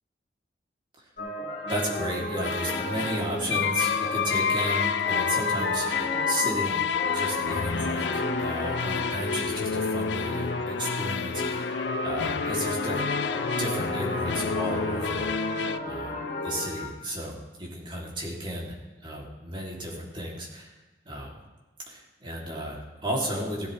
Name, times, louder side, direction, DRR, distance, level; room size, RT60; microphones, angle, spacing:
sound 1, 1.2-16.9, left 1 dB, 50° left, 3.5 m, -34 dB
sound 2, 1.7-2.0 2.4-15.8, left 6 dB, 90° left, 0.5 m, -29 dB
voice 1, 1.7-5.9 6.3-6.8 7.1-13.0 13.3-15.6 15.8-16.2 16.4-18.7 19.0-20.7 21.0-21.3 21.9-23.7, right 1 dB, 30° right, -3 dB, 2.9 m, -33 dB
16.5 x 12.5 x 3.3 m, 1.2 s
head